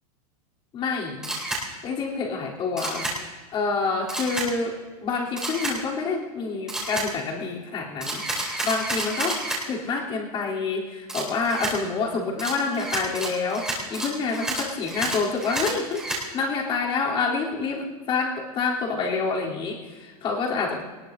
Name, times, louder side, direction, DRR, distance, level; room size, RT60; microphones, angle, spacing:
voice 1, 0.7-1.3 1.8-3.1 3.5-16.0 16.3-20.8, left 4 dB, 25° left, -3 dB, 3.2 m, -27 dB
Camera, 1.2-1.6 2.8-3.2 4.1-4.5 5.4-5.8 6.7-7.1 8.0-9.6 11.1-11.7 12.4-16.2, right 2 dB, 5° right, 3.3 m, -30 dB
22.5 x 20.0 x 2.6 m, 1.3 s
supercardioid pair, 160°, 19 cm